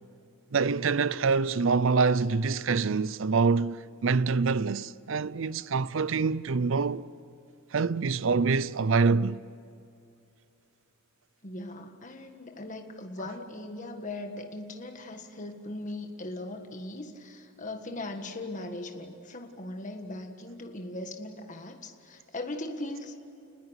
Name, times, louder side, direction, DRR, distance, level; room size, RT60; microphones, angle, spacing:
voice 1, 0.5-7.0 7.7-9.4, right 4 dB, 65° right, 0.6 m, -25 dB
voice 2, 11.4-23.1, left 2 dB, 40° left, 1.7 m, -39 dB
29.5 x 20.5 x 8.1 m
head